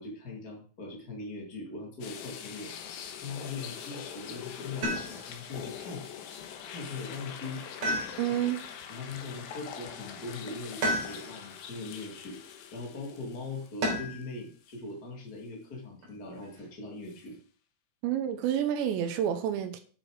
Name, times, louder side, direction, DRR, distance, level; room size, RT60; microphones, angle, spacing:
voice 1, 0.0-2.7 3.2-6.0 6.6-7.9 8.2-8.3 8.9-12.4 12.7-17.4, left 3 dB, 40° left, 1.3 m, -41 dB
sound 1, 2.0-14.2 14.7-14.8 17.1-17.2, left 8 dB, 75° left, 2.3 m, -43 dB
sound 2, 4.8-5.5 7.8-8.6 10.8-11.5 13.8-14.3 16.0-16.7, equal, 35° right, 4.0 m, -32 dB
voice 2, 8.2-8.6 18.0-19.8, right 10 dB, 75° right, 2.9 m, -29 dB
10.0 x 6.8 x 4.9 m
omnidirectional pair, 5.6 m